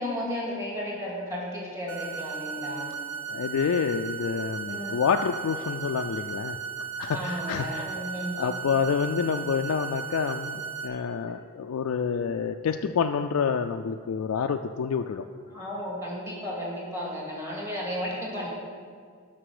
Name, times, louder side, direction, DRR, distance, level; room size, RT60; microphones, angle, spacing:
voice 1, 0.0-2.9 4.7-5.0 7.1-8.4 15.5-18.5, equal, 15° right, -4 dB, 2.2 m, -34 dB
sound 1, 1.9-10.9, right 6 dB, 85° right, 1.1 m, -36 dB
voice 2, 3.3-6.6 7.0-8.0 8.3-15.2, left 6 dB, 70° left, 5 dB, 0.4 m, -28 dB
12.0 x 5.9 x 4.9 m, 2.1 s
head